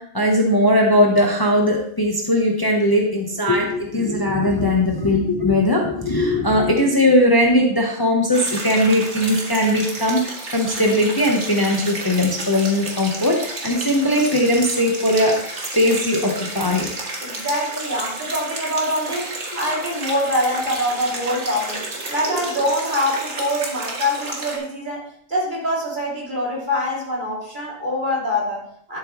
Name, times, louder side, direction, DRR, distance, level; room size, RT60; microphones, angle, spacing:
voice 1, 0.0-15.5 15.7-16.9, left 1 dB, 20° left, 0 dB, 1.0 m, -19 dB
sound 1, 8.3-24.6, right 2 dB, 90° right, 2.1 m, -31 dB
voice 2, 17.2-21.8 22.1-29.0, left 1 dB, 45° right, -4 dB, 3.1 m, -24 dB
11.5 x 7.8 x 3.1 m, 0.67 s
omnidirectional pair, 1.2 m